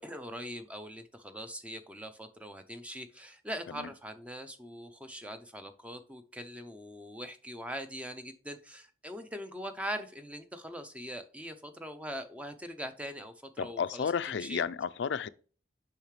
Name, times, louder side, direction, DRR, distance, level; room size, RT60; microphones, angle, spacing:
voice 1, 0.0-14.0 14.4-14.6, equal, 10° right, 0.6 m, -42 dB
voice 2, 13.6-15.3, left 6 dB, 85° left, 0.4 m, -32 dB
6.9 x 5.6 x 3.2 m
head